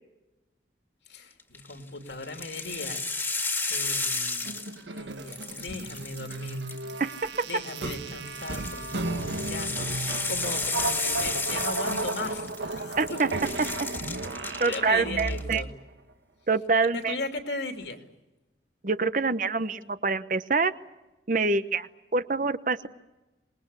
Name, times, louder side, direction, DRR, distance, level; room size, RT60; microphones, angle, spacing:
voice 1, 1.1-3.0 3.7-4.6 4.8-6.6 7.4-13.4 14.4-15.7 16.9-18.0, left 2 dB, 75° left, 5 dB, 2.9 m, -37 dB
sound 1, 1.4-1.7 2.2-5.0 5.3-7.1 8.3-12.8 13.1-14.8 15.1-15.6, left 3 dB, 10° left, 2.0 m, -32 dB
sound 2, 4.4-15.7, right 2 dB, 80° right, 1.6 m, -34 dB
voice 2, 7.0-7.5 13.0-13.3 14.6-15.6 16.5-17.2 18.8-20.7 21.3-22.9, right 4 dB, 45° right, 12 dB, 1.0 m, -26 dB
26.5 x 21.0 x 8.3 m, 1.0 s
head